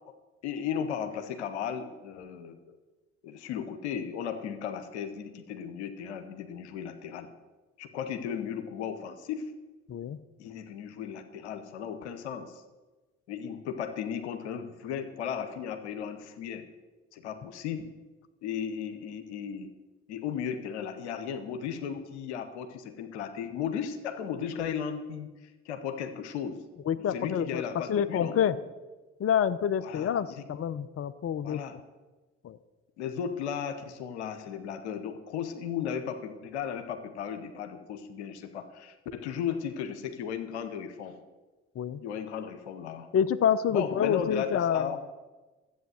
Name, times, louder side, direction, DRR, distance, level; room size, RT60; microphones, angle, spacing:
voice 1, 0.4-2.8 3.2-7.3 7.8-9.5 10.4-12.6 13.3-16.7 17.1-17.9 18.4-19.7 20.1-26.6 26.9-28.6 29.8-30.4 31.4-31.8 33.0-41.2 42.0-43.1 43.7-45.1, left 8 dB, 85° left, 9 dB, 0.9 m, -35 dB
voice 2, 26.9-27.6 27.9-28.6 29.2-31.6 32.4-32.6 41.8-42.0 43.1-44.9, left 8 dB, 45° left, 14 dB, 0.7 m, -27 dB
12.5 x 8.2 x 7.9 m, 1.2 s
figure-of-eight pair, 40°, 33 cm